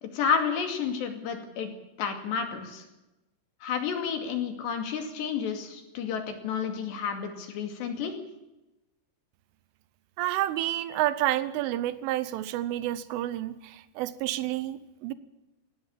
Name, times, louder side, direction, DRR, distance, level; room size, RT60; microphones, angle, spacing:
voice 1, 0.0-1.7 2.0-2.9 3.6-8.1, left 6 dB, 65° left, 6 dB, 4.4 m, -30 dB
voice 2, 10.2-15.1, right 14 dB, 80° right, 15 dB, 3.4 m, -29 dB
18.0 x 17.0 x 8.9 m, 0.95 s
omnidirectional pair, 5.7 m